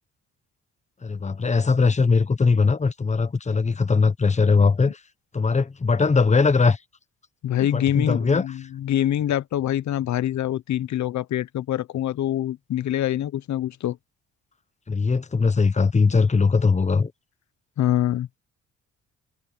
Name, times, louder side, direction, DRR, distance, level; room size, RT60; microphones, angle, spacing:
voice 1, 1.0-5.0 5.3-6.8 7.6-8.5 14.9-17.1, left 4 dB, 25° left, 1.2 m, -20 dB
voice 2, 7.4-14.0 17.8-18.3, left 12 dB, 70° left, 1.0 m, -25 dB
cardioid pair, 90°, 30 cm